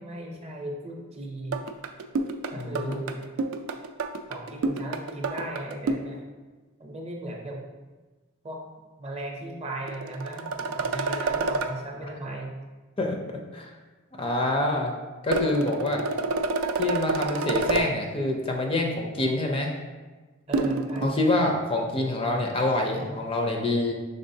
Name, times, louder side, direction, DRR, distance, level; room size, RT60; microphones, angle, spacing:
voice 1, 0.0-1.6 2.5-3.2 4.3-6.2 6.8-7.6 8.4-8.6 9.0-12.6 20.5-21.4, right 1 dB, 30° right, 1 dB, 0.6 m, -36 dB
sound 1, 1.5-6.1 9.9-11.7 15.3-17.9 20.5-21.1, right 3 dB, 75° right, 0.3 m, -28 dB
voice 2, 2.5-3.0 13.0-13.7 14.2-14.9 15.2-16.0 16.8-19.7 21.0-23.9, left 2 dB, 25° left, 1 dB, 0.4 m, -26 dB
5.3 x 3.6 x 2.7 m, 1.3 s
head